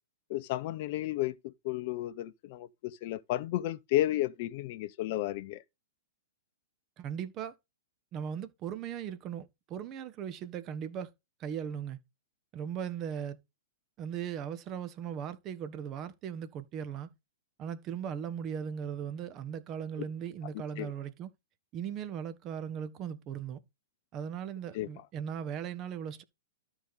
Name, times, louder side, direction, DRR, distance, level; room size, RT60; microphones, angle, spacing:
voice 1, 0.3-5.6 20.8-20.9 24.7-24.9, left 15 dB, 50° left, 0.7 m, -33 dB
voice 2, 7.0-7.5 8.1-11.1 11.4-12.0 12.5-13.4 14.0-17.1 17.6-21.3 21.7-23.6 24.1-26.2, right 8 dB, 35° right, 1.3 m, -38 dB
12.5 x 5.0 x 4.1 m
hypercardioid pair, 115°, 0 cm